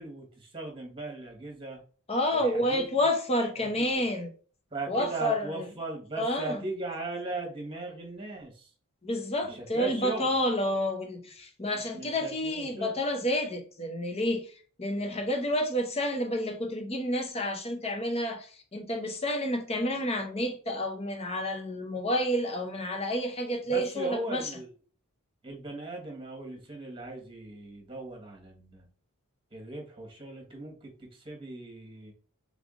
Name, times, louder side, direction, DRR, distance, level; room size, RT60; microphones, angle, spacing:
voice 1, 0.0-1.8 2.3-2.8 3.6-4.0 4.7-8.7 9.5-10.3 11.7-13.0 23.6-24.7 25.4-28.8 29.5-32.1, right 2 dB, 25° right, 1.3 m, -38 dB
voice 2, 2.1-4.3 4.9-5.7 6.2-6.6 9.0-14.5 14.8-24.5, left 1 dB, 30° left, 0.9 m, -29 dB
3.7 x 3.4 x 3.7 m
head